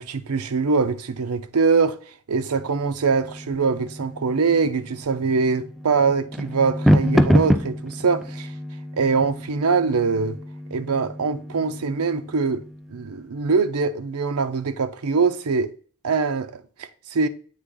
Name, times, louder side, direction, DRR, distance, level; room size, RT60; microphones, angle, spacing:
voice 1, 0.0-2.0 2.3-8.5 8.9-10.4 10.7-15.7 16.0-17.3, right 4 dB, 80° right, 0.6 m, -23 dB
sound 1, 2.3-13.1, equal, ahead, 0.3 m, -27 dB
8.1 x 3.5 x 3.8 m
head